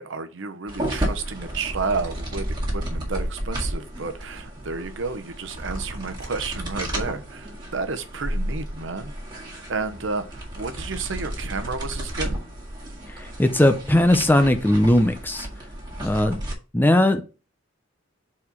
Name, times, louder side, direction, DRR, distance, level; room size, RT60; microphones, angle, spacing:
voice 1, 0.0-9.1 9.4-12.4, right 4 dB, 65° right, 0.8 m, -31 dB
sound 1, 0.7-16.5, right 1 dB, 25° right, 1.9 m, -32 dB
voice 2, 13.1-15.5 16.0-16.4 16.7-17.2, left 1 dB, 10° left, 0.6 m, -19 dB
4.8 x 4.3 x 5.4 m
head